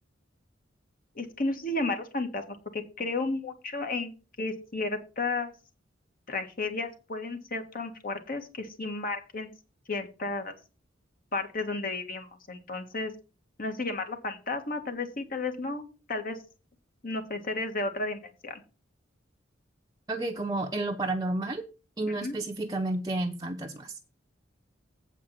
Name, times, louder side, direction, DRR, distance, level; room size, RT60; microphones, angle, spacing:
voice 1, 1.1-5.5 6.3-9.5 9.9-10.5 11.3-13.1 13.6-16.4 17.0-18.6 22.1-22.4, left 3 dB, 50° left, 6 dB, 1.7 m, -33 dB
voice 2, 20.1-21.6 22.0-23.9, right 2 dB, 20° right, 1 dB, 0.8 m, -31 dB
8.2 x 5.0 x 7.5 m, 0.33 s
head